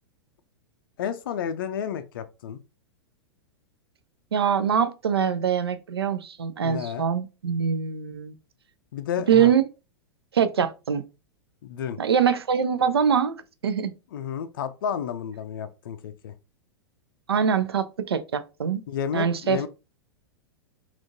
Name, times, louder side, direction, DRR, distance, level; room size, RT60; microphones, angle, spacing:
voice 1, 1.0-2.6 6.6-7.0 8.9-9.5 11.6-12.0 14.1-16.3 18.9-19.7, left 8 dB, 55° left, 0.4 m, -31 dB
voice 2, 4.3-8.3 9.3-9.6 10.3-11.0 12.0-13.4 13.6-13.9 17.3-18.8 19.1-19.7, right 7 dB, 70° right, 0.4 m, -23 dB
3.5 x 2.4 x 2.6 m
figure-of-eight pair, 100°, 13 cm